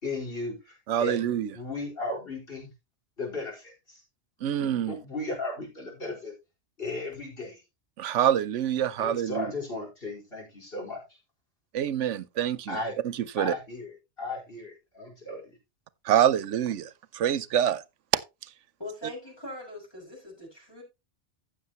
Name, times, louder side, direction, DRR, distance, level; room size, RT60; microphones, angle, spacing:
voice 1, 0.0-2.7 3.2-4.0 4.9-6.3 6.8-7.6 9.0-11.0 12.7-12.9 13.4-13.9 14.2-15.6, left 2 dB, 50° left, 4.9 m, -35 dB
voice 2, 0.9-1.5 4.4-4.9 8.0-9.5 11.7-12.8 13.0-13.5 16.0-17.8, right 10 dB, 90° right, 1.0 m, -26 dB
voice 3, 18.8-20.8, left 1 dB, 20° left, 5.6 m, -41 dB
15.5 x 6.8 x 3.0 m
omnidirectional pair, 1.2 m